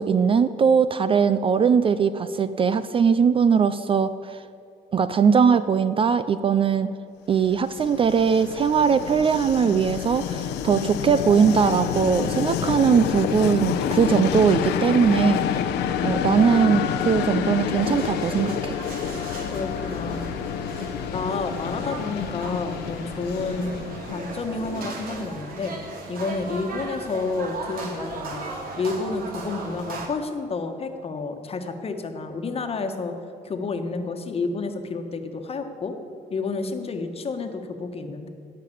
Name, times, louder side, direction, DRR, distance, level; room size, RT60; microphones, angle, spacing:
voice 1, 0.0-4.4 4.9-6.9 7.3-15.7 16.0-18.8, right 6 dB, 30° right, 13 dB, 0.4 m, -20 dB
Train, 7.5-25.2, left 8 dB, 80° left, 0.9 m, -28 dB
sound 1, 17.8-30.1, right 3 dB, 60° right, 2.4 m, -37 dB
voice 2, 19.5-20.3 21.1-25.8 26.1-28.5 28.8-33.1 33.4-35.9 36.3-38.3, left 3 dB, 35° left, 6 dB, 1.3 m, -30 dB
17.0 x 5.9 x 8.5 m, 2.6 s
cardioid pair, 110°, 17 cm